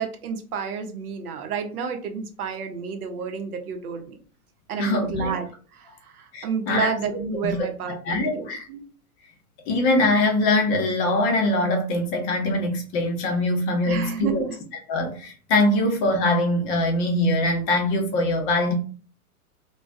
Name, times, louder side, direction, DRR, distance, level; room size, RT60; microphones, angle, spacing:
voice 1, 0.0-4.2 4.7-5.5 5.7-8.8 13.8-14.6, right 6 dB, 75° right, 6 dB, 0.7 m, -30 dB
voice 2, 4.8-5.3 6.3-6.9 7.4-7.5 8.0-8.7 9.7-14.5 14.9-18.7, left 2 dB, 35° left, 2 dB, 0.6 m, -22 dB
2.4 x 2.2 x 2.4 m, 0.40 s
hypercardioid pair, 115°, 45 cm